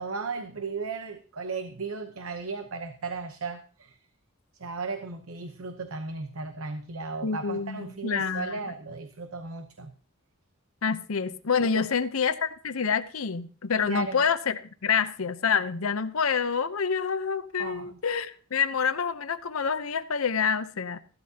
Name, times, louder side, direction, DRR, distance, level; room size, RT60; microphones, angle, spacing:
voice 1, 0.0-4.0 4.5-9.9 11.7-11.9 13.8-14.2 17.6-18.0, right 4 dB, 85° right, 0.9 m, -35 dB
voice 2, 7.2-8.6 10.8-21.0, left 6 dB, 85° left, 0.8 m, -27 dB
15.0 x 12.0 x 2.9 m
head